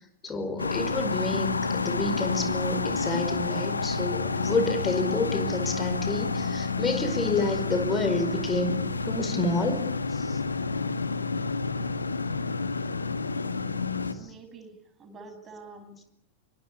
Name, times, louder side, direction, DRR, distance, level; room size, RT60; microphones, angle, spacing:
voice 1, 0.2-8.8 9.0-9.8 10.1-10.4, left 2 dB, 20° left, 9 dB, 5.0 m, -29 dB
sound 1, 0.6-14.1, left 4 dB, 80° left, 1.7 m, -29 dB
voice 2, 14.2-16.1, right 3 dB, 25° right, 5 dB, 7.7 m, -47 dB
24.5 x 24.5 x 8.6 m, 0.72 s
figure-of-eight pair, 90°, 0 cm